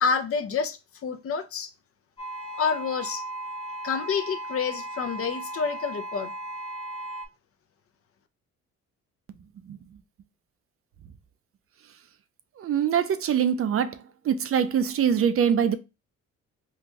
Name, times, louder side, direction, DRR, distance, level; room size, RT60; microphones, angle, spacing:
voice 1, 0.0-1.7 2.6-3.2 3.8-6.3, left 6 dB, 50° left, 0.6 m, -28 dB
sound 1, 2.2-7.3, right 1 dB, 20° left, 1.0 m, -36 dB
voice 2, 12.6-14.0 14.2-15.8, right 8 dB, 50° right, 0.5 m, -23 dB
3.7 x 2.3 x 2.9 m
cardioid pair, 90°, 30 cm